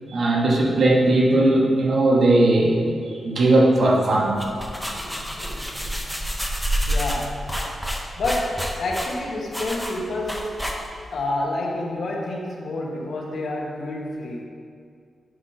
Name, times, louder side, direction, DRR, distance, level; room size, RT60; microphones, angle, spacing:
voice 1, 0.1-2.8 3.1-4.4, right 2 dB, 60° right, -2 dB, 1.3 m, -18 dB
sound 1, 4.2-11.2, equal, ahead, 0.8 m, -28 dB
voice 2, 4.7-6.1 6.9-7.3 8.2-10.6 11.1-14.4, left 2 dB, 70° left, -2 dB, 1.2 m, -29 dB
9.5 x 6.2 x 2.8 m, 2.2 s
wide cardioid pair, 110°, 0 cm